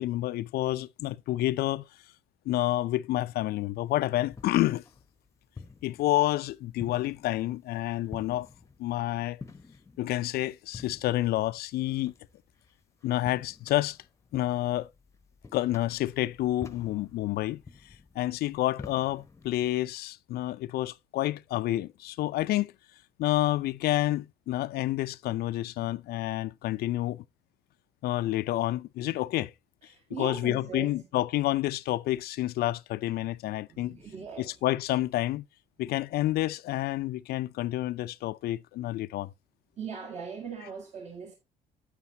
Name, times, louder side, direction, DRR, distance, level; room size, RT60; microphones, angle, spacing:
voice 1, 0.0-1.9 2.5-4.8 5.8-8.5 8.8-9.4 10.0-12.1 13.0-14.0 14.3-14.9 15.5-17.6 18.2-22.7 23.2-27.2 28.0-29.5 30.2-34.0 34.4-35.4 35.8-39.3, left 15 dB, 65° left, 0.5 m, -29 dB
sound 1, 3.8-19.7, left 4 dB, 15° left, 0.8 m, -49 dB
voice 2, 29.9-30.9 33.7-34.5 39.8-41.3, right 5 dB, 40° right, 1.9 m, -39 dB
9.6 x 8.1 x 2.8 m
cardioid pair, 110°, 17 cm